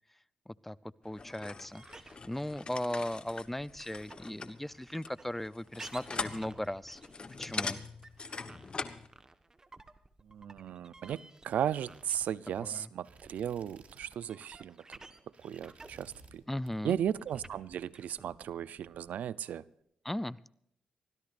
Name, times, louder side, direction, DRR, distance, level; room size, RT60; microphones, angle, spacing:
voice 1, 0.5-0.8 1.0-7.0 7.4-7.8 12.6-12.9 16.5-17.0 20.0-20.5, left 1 dB, 5° left, 19 dB, 0.5 m, -37 dB
sound 1, 1.1-9.1, left 4 dB, 40° left, 1.2 m, -42 dB
sound 2, 1.7-12.5 12.7-19.5, right 2 dB, 25° right, 1.3 m, -54 dB
voice 2, 10.3-14.8 15.4-16.4 16.8-19.6, right 9 dB, 80° right, 19 dB, 0.5 m, -36 dB
sound 3, 11.0-14.3 14.6-14.9 15.2-16.4 16.7-17.0 17.3-18.3, right 4 dB, 60° right, 3.4 m, -58 dB
24.5 x 16.5 x 2.6 m, 0.71 s
cardioid pair, 80°, 3 cm